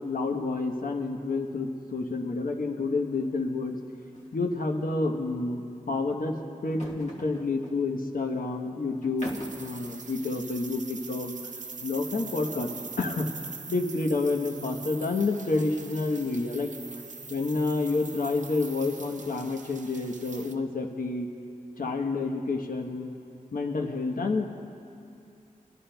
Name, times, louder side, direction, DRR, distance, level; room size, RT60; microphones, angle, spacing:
voice 1, 0.0-3.8 4.3-6.4 6.6-9.3 9.6-11.3 11.8-12.7 13.0-13.3 13.7-16.7 17.3-21.3 21.8-23.1 23.5-24.5, left 3 dB, 75° left, 3 dB, 1.0 m, -29 dB
sound 1, 4.1-4.3 4.6-4.7 6.6-7.8 9.0-9.8, left 1 dB, 55° left, 1.4 m, -42 dB
sound 2, 9.2-20.5, right 4 dB, 60° right, 0.7 m, -43 dB
29.0 x 11.0 x 2.2 m, 2.6 s
wide cardioid pair, 55°, 14 cm